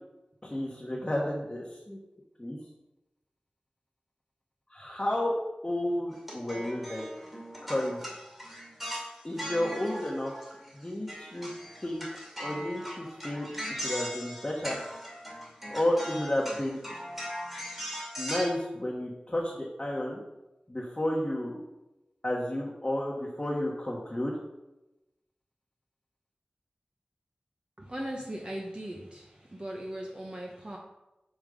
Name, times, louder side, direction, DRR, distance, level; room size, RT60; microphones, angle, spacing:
voice 1, 0.4-2.0 2.4-2.6 4.7-5.3 5.6-7.1 7.6-8.0 9.2-10.3 10.7-11.5 11.8-12.0 12.4-14.8 15.7-16.8 18.2-20.2 20.7-21.6 22.2-24.4, left 1 dB, 25° left, -4 dB, 1.2 m, -31 dB
sound 1, 6.2-10.8 11.1-18.5, equal, 10° right, 2.2 m, -39 dB
voice 2, 27.8-30.8, right 1 dB, 30° right, -1 dB, 0.8 m, -38 dB
5.3 x 5.3 x 5.0 m, 0.99 s
wide cardioid pair, 60°, 3 cm